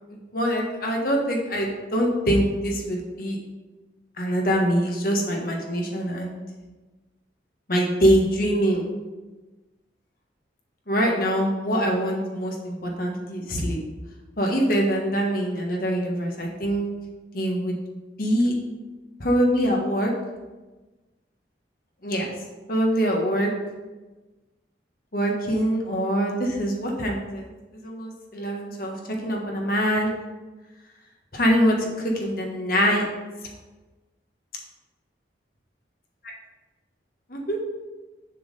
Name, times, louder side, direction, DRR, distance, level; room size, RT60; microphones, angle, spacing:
voice 1, 0.1-3.4 4.2-6.4 7.7-8.9 10.9-13.8 14.4-16.9 17.3-17.8 18.2-18.5 19.2-20.1 22.0-22.3 22.7-23.5 25.1-27.4 27.7-29.0 29.2-30.2 31.3-33.0 37.3-37.6, equal, 50° left, 0 dB, 1.4 m, -24 dB
7.0 x 4.8 x 5.3 m, 1.2 s
head